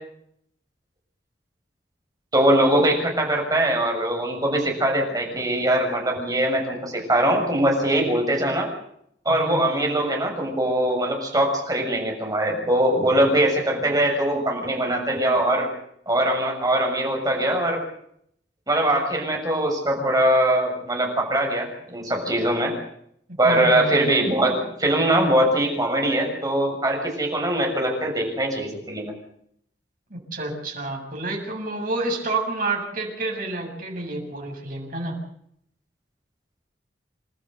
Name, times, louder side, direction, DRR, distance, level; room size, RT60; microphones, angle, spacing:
voice 1, 2.3-8.7 9.2-15.7 16.1-17.8 18.7-22.7 23.4-29.1, right 1 dB, 20° right, 1 dB, 6.7 m, -22 dB
voice 2, 9.3-9.8 23.4-24.1 30.1-35.2, right 2 dB, 50° right, 1 dB, 7.1 m, -29 dB
28.5 x 13.0 x 8.1 m, 0.71 s
head